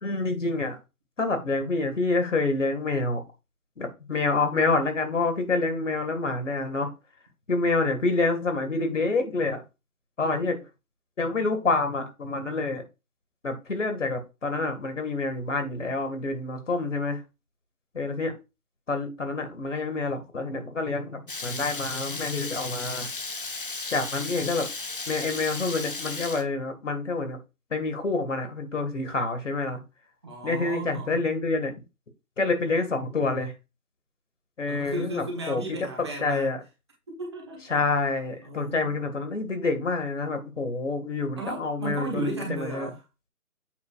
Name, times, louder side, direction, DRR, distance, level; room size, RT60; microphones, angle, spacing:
voice 1, 0.0-0.8 1.2-3.2 3.8-6.9 7.5-9.6 10.2-10.6 11.2-12.8 13.4-17.2 17.9-18.3 18.9-23.1 23.9-24.7 25.1-27.4 27.7-29.8 30.4-31.7 32.4-33.5 34.6-35.6 36.2-36.6 37.7-42.9, left 3 dB, 55° left, 2.1 m, -27 dB
Water tap faucet / Liquid, 21.3-26.4, left 3 dB, 35° left, 0.8 m, -35 dB
voice 2, 30.2-31.2 34.7-36.6 37.2-37.9 38.4-39.0 41.4-43.0, right 2 dB, 20° right, 1.3 m, -35 dB
8.3 x 6.8 x 2.5 m
figure-of-eight pair, 165°, 45 cm